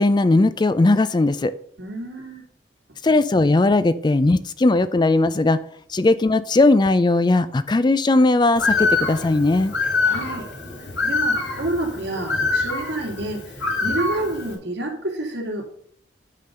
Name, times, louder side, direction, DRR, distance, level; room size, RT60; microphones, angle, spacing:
voice 1, 0.0-1.5 3.0-5.6 5.9-9.7, left 2 dB, 25° left, 14 dB, 0.4 m, -18 dB
voice 2, 1.8-2.4 10.0-10.5 11.0-15.6, right 1 dB, 70° right, 0 dB, 2.6 m, -29 dB
Bird, 8.6-14.5, left 3 dB, 75° left, 3.0 m, -25 dB
10.5 x 3.9 x 6.7 m, 0.62 s
head